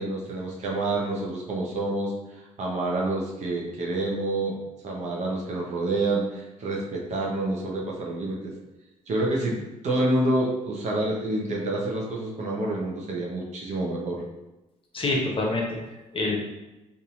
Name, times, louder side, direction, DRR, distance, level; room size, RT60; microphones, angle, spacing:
voice 1, 0.0-4.6 4.8-8.5 9.1-9.6 9.8-14.2, right 2 dB, 45° right, -2 dB, 0.9 m, -28 dB
voice 2, 14.9-16.4, left 2 dB, 30° left, 0 dB, 0.9 m, -27 dB
4.1 x 2.7 x 2.4 m, 1.0 s
figure-of-eight pair, 45°, 17 cm